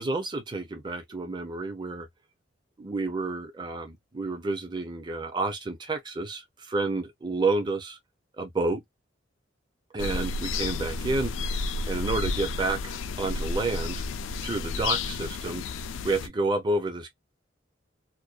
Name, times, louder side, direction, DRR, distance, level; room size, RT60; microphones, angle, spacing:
voice 1, 0.0-2.1 2.8-8.0 8.4-8.8 9.9-14.0 14.4-15.6 16.0-17.1, right 3 dB, 25° right, 0.5 m, -30 dB
sound 1, 10.0-16.3, left 4 dB, 85° left, 0.3 m, -31 dB
2.5 x 2.1 x 2.3 m
head